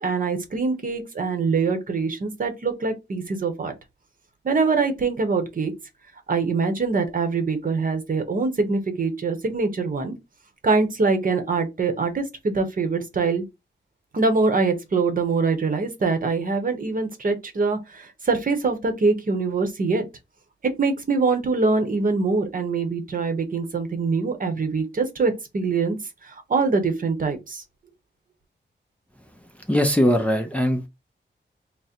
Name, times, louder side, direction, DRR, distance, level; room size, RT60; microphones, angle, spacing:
voice 1, 0.0-3.7 4.4-5.7 6.3-10.1 10.6-13.4 14.1-20.1 20.6-26.0 26.2-27.6, right 4 dB, 45° right, 0.8 m, -24 dB
voice 2, 29.7-30.9, equal, 5° left, 0.5 m, -20 dB
3.7 x 2.0 x 4.2 m
wide cardioid pair, 170°, 19 cm